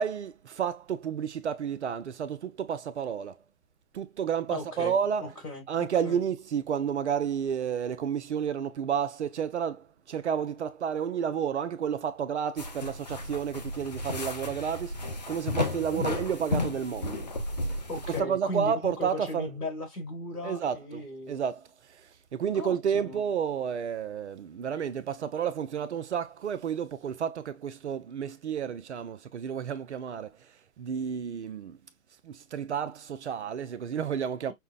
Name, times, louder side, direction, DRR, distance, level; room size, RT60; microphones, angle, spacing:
voice 1, 0.0-3.4 3.9-5.4 5.7-17.3 18.1-19.5 20.4-30.5 30.8-31.8 32.2-34.5, right 8 dB, 50° right, 0.6 m, -31 dB
voice 2, 4.5-4.9 5.2-6.2 15.9-16.0 17.9-21.4 22.5-23.2, left 1 dB, 85° left, 2.0 m, -37 dB
sound 1, 12.6-18.2, left 2 dB, 30° left, 0.4 m, -33 dB
5.5 x 2.1 x 2.2 m
figure-of-eight pair, 140°, 45 cm